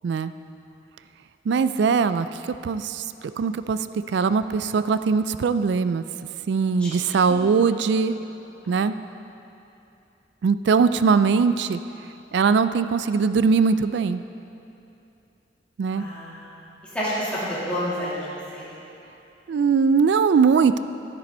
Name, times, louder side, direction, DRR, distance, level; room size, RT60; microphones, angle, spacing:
voice 1, 1.5-2.3 2.6-3.0 3.4-3.8 4.1-6.0 6.5-8.1 8.7-9.0 10.4-11.8 12.3-14.2 15.8-16.1 19.5-20.8, right 5 dB, 65° right, 12 dB, 0.3 m, -20 dB
voice 2, 15.9-16.4 16.9-18.7, equal, 5° left, -11 dB, 2.6 m, -29 dB
10.5 x 9.7 x 4.3 m, 2.8 s
head